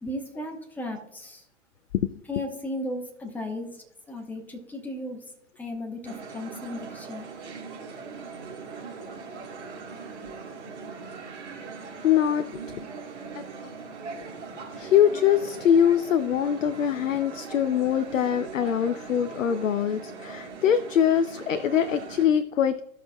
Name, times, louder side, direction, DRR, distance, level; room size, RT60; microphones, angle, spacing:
voice 1, 0.0-1.4 2.3-3.7 4.1-5.2 5.6-7.3, left 1 dB, 5° left, 2 dB, 1.0 m, -35 dB
sound 1, 6.0-22.2, right 5 dB, 55° right, 2.5 m, -40 dB
voice 2, 12.0-12.5 13.4-13.7 14.8-22.8, left 9 dB, 70° left, 12 dB, 0.6 m, -23 dB
16.0 x 5.6 x 2.3 m, 0.82 s
figure-of-eight pair, 110°, 40 cm